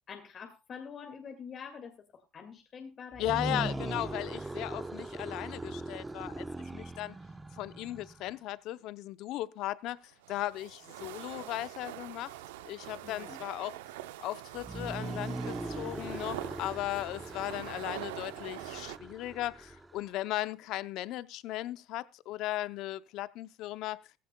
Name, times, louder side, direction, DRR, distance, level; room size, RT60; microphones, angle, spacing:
voice 1, 0.1-3.6 3.9-4.3 13.0-13.4, left 6 dB, 45° left, 2.0 m, -46 dB
sound 1, 3.1-8.3 14.5-20.2, right 2 dB, 15° right, 0.8 m, -40 dB
voice 2, 3.2-6.4 6.7-7.2 7.5-10.0 10.3-12.3 12.6-13.8 14.2-24.0, left 15 dB, 65° left, 0.6 m, -37 dB
sound 2, 10.0-19.0, right 15 dB, 85° right, 0.6 m, -44 dB
15.5 x 15.0 x 2.2 m
hypercardioid pair, 80°, 0 cm